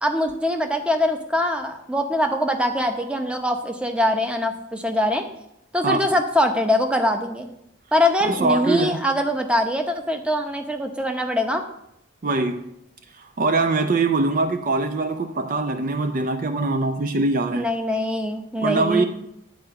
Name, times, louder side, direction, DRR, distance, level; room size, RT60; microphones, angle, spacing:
voice 1, 0.0-5.2 5.7-7.5 7.9-11.6 17.5-19.0, left 1 dB, 5° right, 0.8 m, -23 dB
voice 2, 8.2-9.0 12.2-12.7 13.1-17.7 18.6-19.0, right 3 dB, 45° right, 0.5 m, -23 dB
10.5 x 4.6 x 7.6 m
head